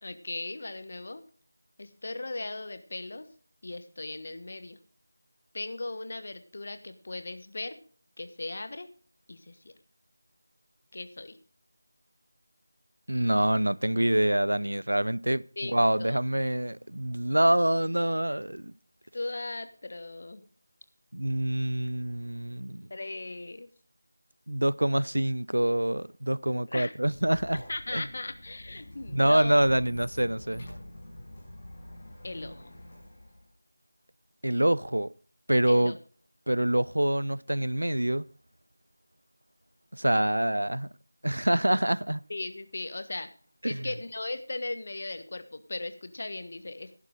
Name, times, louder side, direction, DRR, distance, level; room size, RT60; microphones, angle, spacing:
voice 1, 0.0-1.2 1.8-3.3 3.6-4.8 5.5-7.8 8.2-8.9 9.3-9.7 10.9-11.4 15.6-16.2 19.1-20.4 22.9-23.7 26.5-26.9 27.7-29.6 32.2-32.7 35.7-36.0 42.3-43.3 43.6-47.0, left 2 dB, 45° left, 1.3 m, -38 dB
voice 2, 13.1-18.7 21.1-22.9 24.5-27.6 27.9-28.0 29.1-30.7 34.4-35.1 35.5-36.0 36.5-38.3 39.9-40.9 41.2-42.3 43.6-43.9, right 1 dB, 75° right, 0.5 m, -26 dB
Squeak, 27.0-33.5, left 1 dB, 25° left, 5.7 m, -46 dB
14.0 x 11.0 x 3.8 m
figure-of-eight pair, 170°, 0 cm